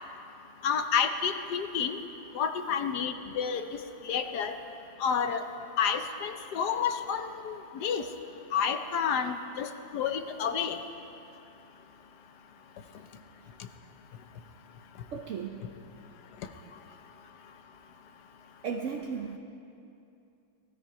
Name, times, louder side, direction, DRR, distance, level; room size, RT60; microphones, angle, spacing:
voice 1, 0.6-2.0 2.3-3.7 4.0-4.6 5.0-5.4 5.8-8.1 8.5-10.8, left 7 dB, 65° left, 8 dB, 1.2 m, -30 dB
voice 2, 15.1-15.6 18.6-19.4, right 6 dB, 60° right, 2 dB, 0.8 m, -35 dB
19.0 x 13.5 x 4.9 m, 2.7 s
omnidirectional pair, 2.1 m